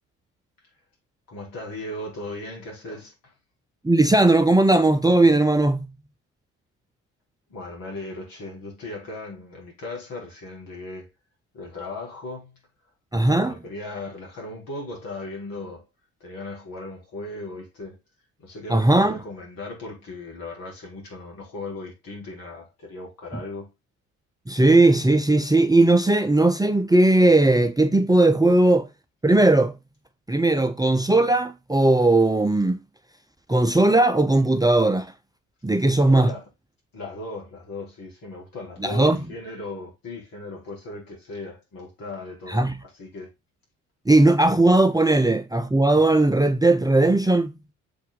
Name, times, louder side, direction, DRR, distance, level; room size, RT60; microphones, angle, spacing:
voice 1, 1.3-3.3 7.5-11.1 11.5-12.6 13.3-15.8 16.2-18.0 18.4-23.7 28.5-28.6 36.0-36.5 36.9-43.3, left 2 dB, 60° left, 4.9 m, -37 dB
voice 2, 3.8-5.9 13.1-13.5 18.7-19.2 24.5-28.9 29.2-29.7 30.3-32.8 33.5-35.1 35.6-36.3 38.8-39.2 42.5-42.8 44.1-47.5, right 2 dB, 10° right, 0.8 m, -18 dB
7.1 x 4.6 x 3.9 m
hypercardioid pair, 50°, 38 cm